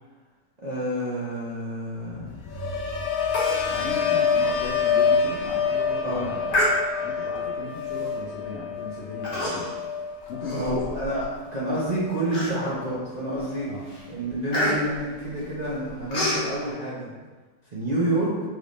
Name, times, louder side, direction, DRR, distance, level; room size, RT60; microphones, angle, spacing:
voice 1, 0.6-2.4 3.8-4.1 6.0-6.3 10.5-13.7 14.1-17.1 17.7-18.3, right 1 dB, 60° right, -8 dB, 0.4 m, -28 dB
sound 1, 2.1-12.2 12.5-13.0, left 6 dB, 60° left, 0.9 m, -27 dB
Human voice, 3.3-3.7 4.0-4.1 4.6-4.7 5.3-5.5 6.5-7.2 8.0-8.2 9.2-9.8 10.2-11.2 11.7-11.8 12.3-12.9 13.4-13.6 13.9-16.5, left 1 dB, 30° left, 0.7 m, -28 dB
voice 2, 3.7-6.6 7.0-9.7 10.3-11.0 13.7-13.9, left 3 dB, 90° left, -6 dB, 0.5 m, -36 dB
5.9 x 3.2 x 2.6 m, 1.3 s
omnidirectional pair, 2.0 m